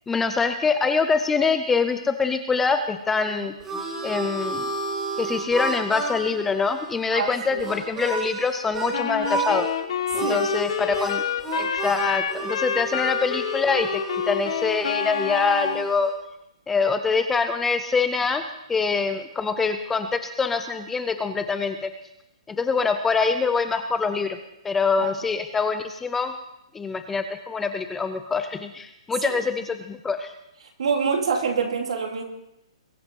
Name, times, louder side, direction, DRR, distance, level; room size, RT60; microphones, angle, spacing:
voice 1, 0.1-3.5 4.0-4.7 5.2-9.7 10.1-11.2 11.6-14.0 14.3-16.1 16.7-18.4 18.7-21.9 22.5-24.4 24.6-26.3 26.7-30.3, left 4 dB, 5° left, 8 dB, 0.4 m, -24 dB
Harmonica, 3.1-8.9 9.2-9.7 10.1-16.1, right 3 dB, 10° right, 2.4 m, -32 dB
voice 2, 7.1-7.6 10.2-10.5 25.0-25.1 29.2-29.4 30.8-32.2, right 5 dB, 65° right, 3 dB, 2.8 m, -26 dB
Wind instrument woodwind instrument, 8.9-15.9, left 8 dB, 50° left, 1.3 m, -28 dB
22.0 x 8.1 x 5.4 m, 0.86 s
hypercardioid pair, 175°, 4 cm